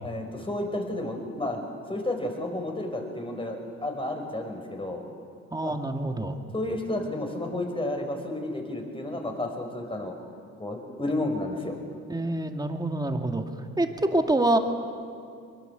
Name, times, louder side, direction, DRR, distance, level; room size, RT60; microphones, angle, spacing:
voice 1, 0.0-1.6 1.9-5.0 5.6-5.7 6.5-10.2 10.6-11.8, left 1 dB, 15° left, 3 dB, 5.2 m, -31 dB
voice 2, 5.5-6.4 12.1-13.4 13.8-14.6, right 1 dB, 15° right, 5 dB, 2.2 m, -26 dB
23.0 x 22.5 x 8.2 m, 2.3 s
cardioid pair, 90°, 30 cm